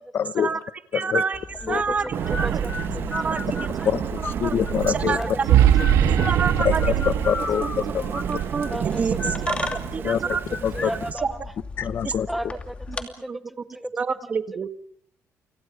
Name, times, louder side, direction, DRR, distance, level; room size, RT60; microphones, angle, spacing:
voice 1, 0.1-0.5 0.9-1.2 1.7-1.8 3.8-5.4 6.6-6.8 7.0-7.6 7.9-8.1 10.0-10.2 10.6-10.9 11.8-12.3, left 8 dB, 45° left, 15 dB, 1.0 m, -24 dB
voice 2, 0.9-1.4 1.7-2.1 2.4-2.5 3.1-3.7 4.4-4.6 4.9-5.4 6.2-6.8 7.4-7.7 8.1-8.7 9.0-9.1 9.5-9.6 9.9-10.4 12.0-12.1 12.9-13.0 13.3-13.4 13.9-14.7, right 5 dB, 30° right, 10 dB, 1.7 m, -27 dB
sound 1, 1.3-13.0, left 3 dB, 20° left, 2.8 m, -35 dB
voice 3, 1.6-2.0 2.4-2.7 3.2-3.3 3.8-3.9 5.1-5.6 6.1-6.2 6.8-6.9 7.6-7.7 8.7-9.2 10.7-11.4 12.3-12.8 13.2-13.9, equal, ahead, 13 dB, 1.2 m, -34 dB
sound 2, 2.0-10.2, right 10 dB, 85° right, 2.5 m, -24 dB
Thunder / Rain, 2.1-11.1, right 8 dB, 45° right, 1.3 m, -32 dB
29.5 x 28.0 x 5.0 m, 0.62 s
cardioid pair, 145°, 5 cm